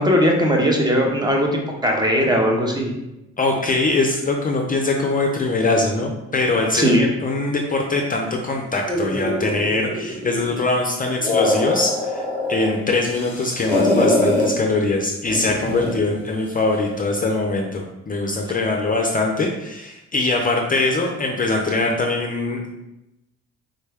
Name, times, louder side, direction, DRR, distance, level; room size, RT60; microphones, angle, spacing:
voice 1, 0.0-2.9 6.7-7.1, equal, 15° right, 0 dB, 0.6 m, -19 dB
voice 2, 3.4-22.7, left 2 dB, 30° left, 1 dB, 0.4 m, -22 dB
sound 1, 8.9-10.6 11.1-12.7 13.1-14.5 15.3-16.1, left 1 dB, 5° left, 0.9 m, -23 dB
3.7 x 2.1 x 3.3 m, 0.93 s
cardioid pair, 90°, 30 cm